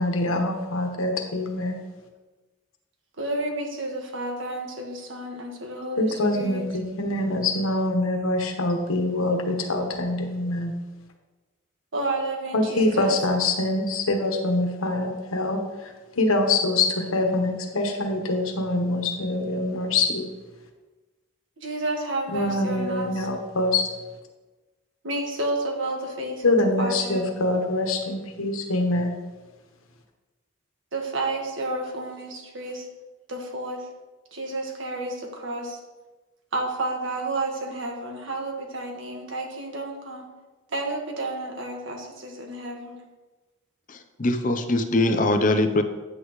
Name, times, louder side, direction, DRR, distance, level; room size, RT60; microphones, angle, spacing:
voice 1, 0.0-1.8 6.0-10.7 12.5-15.6 16.2-20.3 22.3-23.8 26.4-29.1, left 2 dB, 90° left, 3 dB, 1.3 m, -24 dB
voice 2, 3.2-6.6 11.9-13.2 21.6-23.3 25.0-27.2 30.9-32.9 33.3-33.9 34.3-35.8 36.5-40.3 40.7-43.0, right 2 dB, 70° right, 1 dB, 1.6 m, -31 dB
voice 3, 43.9-45.8, left 2 dB, 40° left, 8 dB, 0.6 m, -22 dB
9.6 x 8.4 x 3.1 m, 1.2 s
head